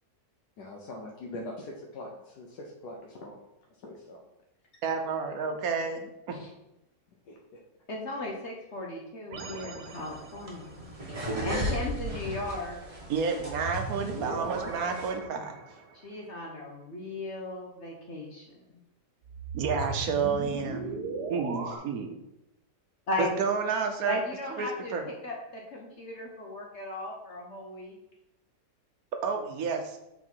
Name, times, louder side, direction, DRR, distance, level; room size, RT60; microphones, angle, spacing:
voice 1, 0.6-3.4 3.8-4.2 7.2-7.6, left 1 dB, 85° left, -1 dB, 1.4 m, -42 dB
voice 2, 4.8-6.4 13.1-15.6 19.5-20.9 21.3-22.2 23.2-24.2 24.6-25.0 29.2-30.0, right 5 dB, 70° right, 5 dB, 1.2 m, -30 dB
voice 3, 7.9-10.9 11.4-12.8 15.9-18.6 23.1-23.3 24.0-28.0, left 2 dB, 50° left, 0 dB, 1.0 m, -36 dB
sound 1, 9.3-10.7 13.4-16.0 19.2-21.8, right 3 dB, 85° right, 1.5 m, -38 dB
sound 2, 9.9-15.1, right 1 dB, 25° right, 1.3 m, -37 dB
6.1 x 4.1 x 4.5 m, 0.88 s
omnidirectional pair, 1.7 m